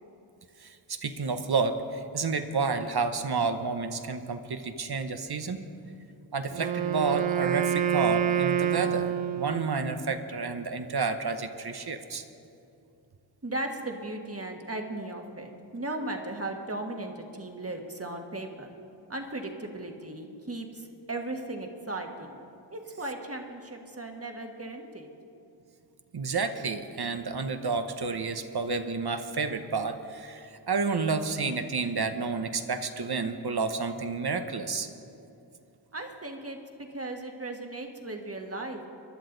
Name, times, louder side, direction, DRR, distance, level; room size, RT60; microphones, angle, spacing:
voice 1, 0.6-5.6 6.3-12.2 26.1-34.9, right 4 dB, 55° right, 8 dB, 0.9 m, -30 dB
Wind instrument woodwind instrument, 6.5-9.8, right 9 dB, 80° right, 0.7 m, -27 dB
voice 2, 13.4-18.7 19.1-22.4 22.7-25.1 35.9-36.6 36.9-38.9, right 2 dB, 30° right, 3 dB, 1.5 m, -37 dB
23.0 x 11.5 x 3.9 m, 2.6 s
wide cardioid pair, 60°, 45 cm